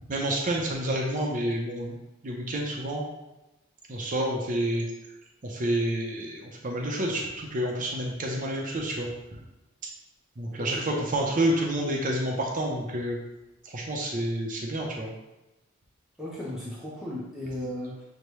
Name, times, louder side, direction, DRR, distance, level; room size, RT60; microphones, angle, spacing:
voice 1, 0.1-1.9 2.2-3.0 3.9-4.9 5.4-9.1 10.4-13.2 13.7-15.1, right 1 dB, 40° right, -1 dB, 0.6 m, -29 dB
voice 2, 16.2-18.0, left 1 dB, 5° right, -7 dB, 0.7 m, -36 dB
6.6 x 2.2 x 3.1 m, 0.97 s
head